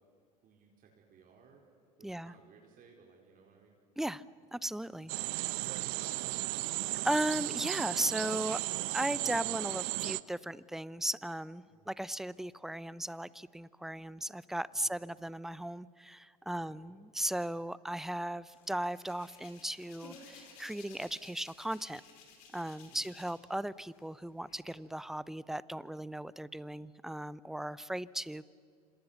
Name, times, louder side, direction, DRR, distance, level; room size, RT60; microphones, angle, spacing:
voice 1, 0.4-1.6 2.0-3.8 5.8-6.8 11.7-12.0 14.7-15.0 16.5-17.0 22.8-23.2, right 5 dB, 45° right, 0 dB, 4.6 m, -61 dB
voice 2, 2.0-2.3 4.0-4.2 4.5-5.1 7.0-8.6 8.9-22.0 22.5-28.4, right 1 dB, ahead, 19 dB, 0.7 m, -37 dB
sound 1, 5.1-10.2, right 23 dB, 60° right, 0.8 m, -35 dB
Hands, 18.5-23.5 23.8-24.7, left 5 dB, 65° left, 5.5 m, -56 dB
27.0 x 26.5 x 7.0 m, 2.3 s
hypercardioid pair, 80°, 20 cm